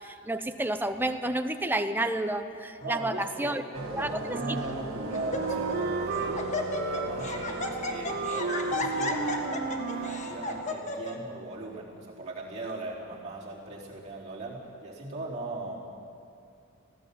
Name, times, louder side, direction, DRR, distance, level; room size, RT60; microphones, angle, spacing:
voice 1, 0.0-3.6 3.9-4.4, right 1 dB, 10° right, 8 dB, 0.8 m, -30 dB
Laughter, 2.8-3.2 4.0-4.1 4.6-4.8 5.1-5.9 6.1-11.2, left 2 dB, 30° left, 1.6 m, -34 dB
voice 2, 2.8-15.8, right 2 dB, 30° right, -6 dB, 4.0 m, -39 dB
sound 1, 3.7-10.7, right 3 dB, 75° right, 1.9 m, -38 dB
Wind instrument woodwind instrument, 4.3-6.4 6.7-7.8 8.0-10.2, right 4 dB, 45° right, 2.0 m, -34 dB
19.0 x 16.5 x 8.8 m, 2.5 s
head